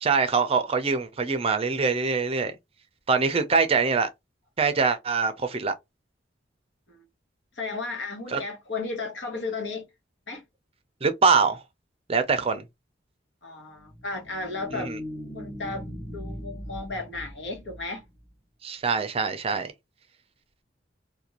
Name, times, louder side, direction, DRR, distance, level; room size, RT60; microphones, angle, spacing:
voice 1, 0.0-2.6 3.1-4.1 4.6-5.7 8.3-8.4 11.0-11.6 12.1-12.6 14.7-15.0 18.6-19.7, right 5 dB, 35° right, 0.5 m, -24 dB
voice 2, 7.6-9.9 10.3-10.4 13.4-14.9 15.3-18.0, left 3 dB, 75° left, 1.1 m, -34 dB
sound 1, 13.8-18.3, equal, 15° left, 0.9 m, -39 dB
2.5 x 2.2 x 2.9 m
head